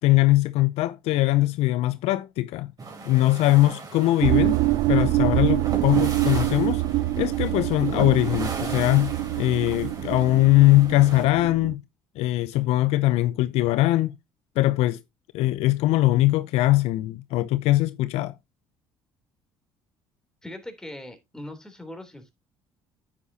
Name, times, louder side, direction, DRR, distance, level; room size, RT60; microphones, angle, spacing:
voice 1, 0.0-2.7 3.0-4.6 4.9-6.8 7.2-11.8 12.2-14.1 14.6-15.0 15.3-18.4, left 17 dB, 70° left, 0.6 m, -21 dB
sound 1, 2.8-11.3, right 3 dB, 35° right, 4.0 m, -37 dB
sound 2, 4.2-11.7, right 17 dB, 65° right, 0.6 m, -25 dB
voice 2, 20.4-22.3, left 1 dB, 5° left, 3.3 m, -40 dB
9.4 x 8.5 x 2.8 m
hypercardioid pair, 70°, 11 cm